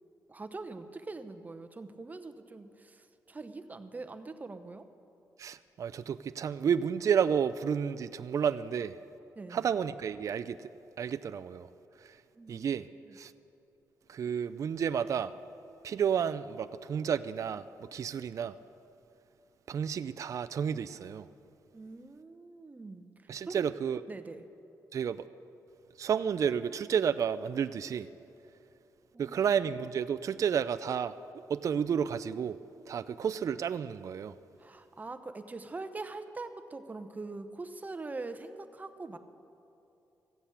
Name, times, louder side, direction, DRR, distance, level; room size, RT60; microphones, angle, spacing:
voice 1, 0.3-4.9 9.4-9.7 12.3-13.2 21.7-23.1 23.5-23.7 24.1-24.5 29.1-29.5 34.6-39.2, right 3 dB, 25° right, 0.8 m, -43 dB
voice 2, 5.4-9.0 9.5-10.7 11.0-11.7 12.0-12.2 12.5-12.9 13.1-13.3 14.1-15.3 15.8-18.6 19.7-21.3 23.3-24.0 24.9-25.3 26.0-28.1 29.2-31.2 31.5-32.6 32.9-34.3, right 7 dB, 50° right, 0.4 m, -31 dB
14.5 x 7.9 x 8.5 m
cardioid pair, 115°, 7 cm